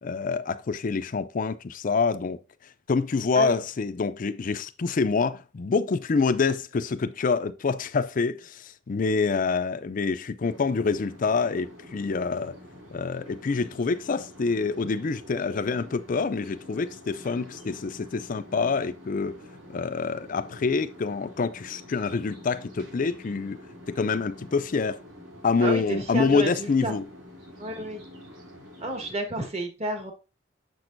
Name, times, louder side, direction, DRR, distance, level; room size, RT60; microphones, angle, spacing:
voice 1, 0.0-2.4 2.9-12.6 12.9-19.4 19.7-23.6 23.9-25.0 25.4-27.1, left 4 dB, 45° left, 0.4 m, -26 dB
sound 1, 10.4-29.2, left 1 dB, 70° right, 3.1 m, -47 dB
voice 2, 25.6-27.0 27.6-28.0 28.8-30.1, right 1 dB, 35° right, 1.3 m, -31 dB
6.7 x 6.1 x 2.6 m
head